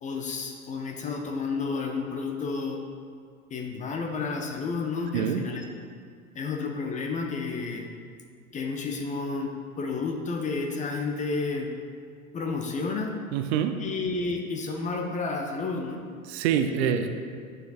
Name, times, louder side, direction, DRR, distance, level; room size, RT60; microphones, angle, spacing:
voice 1, 0.0-2.8 3.5-5.6 6.3-7.9 8.5-11.7 12.3-13.1 13.8-16.0 16.6-17.1, left 4 dB, 20° left, 2 dB, 0.5 m, -31 dB
voice 2, 5.1-5.5 13.3-13.8 16.2-17.1, right 8 dB, 50° right, 8 dB, 0.5 m, -26 dB
9.0 x 6.4 x 2.4 m, 2.1 s
figure-of-eight pair, 90°, 42 cm